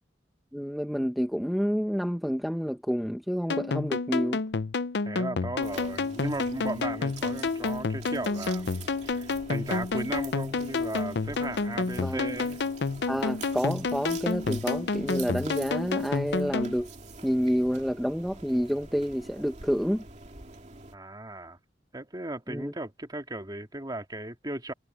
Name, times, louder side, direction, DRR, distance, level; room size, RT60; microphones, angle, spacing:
voice 1, 0.5-4.4 12.0-12.3 13.1-16.9 17.2-20.0 22.5-22.7, equal, ahead, 0.9 m, -29 dB
sound 1, 3.5-16.7, left 4 dB, 70° left, 0.6 m, -30 dB
voice 2, 5.0-12.6 20.9-21.6 21.9-24.7, right 2 dB, 25° right, 2.2 m, -36 dB
sound 2, 5.6-21.0, right 3 dB, 40° right, 2.5 m, -46 dB
head